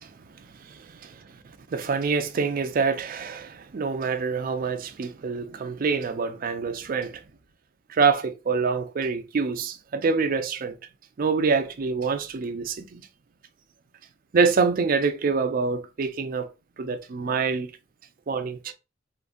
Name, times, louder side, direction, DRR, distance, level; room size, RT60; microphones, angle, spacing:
voice 1, 0.7-1.3 1.7-7.2 7.9-10.8 11.2-13.1 14.3-16.5 16.8-17.7 18.3-18.7, right 5 dB, 45° right, 0.4 m, -26 dB
3.7 x 2.5 x 2.2 m
head